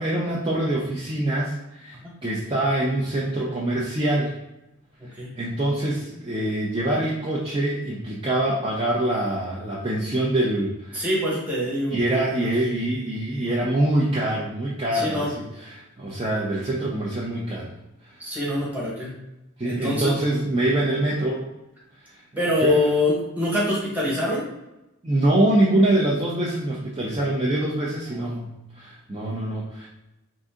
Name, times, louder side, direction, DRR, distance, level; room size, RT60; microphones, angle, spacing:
voice 1, 0.0-4.4 5.1-11.0 11.9-15.3 15.6-17.7 18.0-18.2 19.6-21.4 22.1-22.2 22.6-22.8 25.0-28.5 28.7-29.9, right 1 dB, 25° right, -6 dB, 0.5 m, -24 dB
voice 2, 5.0-5.3 10.9-12.5 14.9-15.3 18.2-19.1 19.6-20.1 22.4-24.5 28.1-28.4, left 1 dB, 10° right, -5 dB, 1.2 m, -25 dB
3.7 x 2.6 x 3.7 m, 0.94 s
head